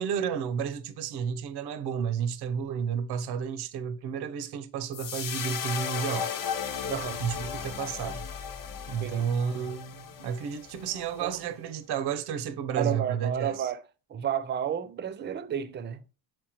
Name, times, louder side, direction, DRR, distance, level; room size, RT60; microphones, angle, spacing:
voice 1, 0.0-6.3 7.2-8.2 8.9-13.7, right 7 dB, 85° right, 0.7 m, -31 dB
sound 1, 4.9-11.3, left 7 dB, 60° left, 0.8 m, -36 dB
voice 2, 6.9-7.2 9.0-9.3 11.2-11.3 12.7-13.8 14.1-16.0, right 9 dB, 30° right, 0.4 m, -31 dB
7.6 x 4.4 x 2.9 m
cardioid pair, 160°, 38 cm